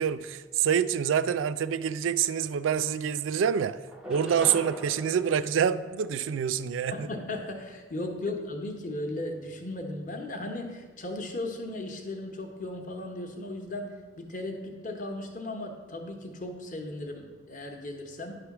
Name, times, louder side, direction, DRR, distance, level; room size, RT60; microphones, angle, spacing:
voice 1, 0.0-3.8 4.1-7.1, right 8 dB, 90° right, 14 dB, 0.3 m, -26 dB
sound 1, 2.2-2.3 2.6-3.4 3.9-6.5, right 1 dB, 5° right, 0.5 m, -43 dB
voice 2, 6.9-18.3, left 2 dB, 40° left, 3 dB, 0.8 m, -36 dB
10.0 x 3.4 x 5.9 m, 1.4 s
head